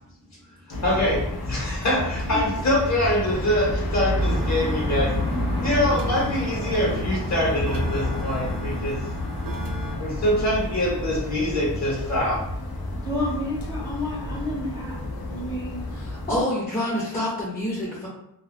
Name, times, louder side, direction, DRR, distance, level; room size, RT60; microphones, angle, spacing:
sound 1, 0.7-16.4, left 1 dB, 70° left, 0.7 m, -29 dB
voice 1, 0.8-5.1 5.6-9.0 10.0-12.4, left 1 dB, 45° left, -4 dB, 1.1 m, -24 dB
sound 2, 4.2-10.0, right 1 dB, 60° right, 0.5 m, -37 dB
voice 2, 13.0-15.0 15.3-15.9, left 1 dB, 10° right, -6 dB, 0.7 m, -31 dB
voice 3, 15.9-18.1, left 1 dB, 25° left, -8 dB, 0.8 m, -27 dB
2.4 x 2.2 x 3.4 m, 0.76 s
wide cardioid pair, 140°, 38 cm